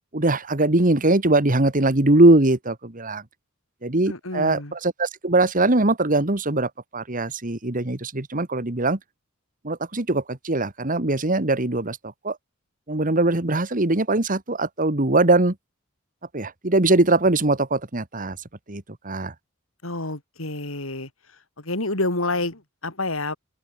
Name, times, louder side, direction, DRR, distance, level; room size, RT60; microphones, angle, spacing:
voice 1, 0.1-3.2 3.8-9.0 9.6-12.0 12.2-12.4 12.9-15.5 16.3-18.4 18.7-19.3, right 2 dB, 40° right, 1.9 m, -21 dB
voice 2, 4.1-4.7 19.8-21.1 21.6-23.4, left 2 dB, 80° left, 5.9 m, -28 dB
open air
head